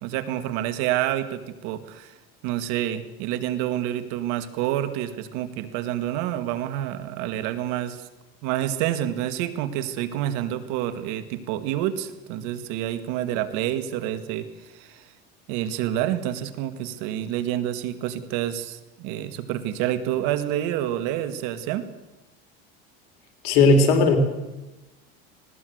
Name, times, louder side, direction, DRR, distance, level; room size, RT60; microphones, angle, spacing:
voice 1, 0.0-2.1 2.4-8.1 8.4-15.0 15.5-21.8, right 12 dB, 70° right, 11 dB, 2.0 m, -28 dB
voice 2, 23.4-24.2, left 3 dB, 75° left, 5 dB, 4.2 m, -16 dB
19.5 x 17.5 x 8.0 m, 1.0 s
supercardioid pair, 100°, 31 cm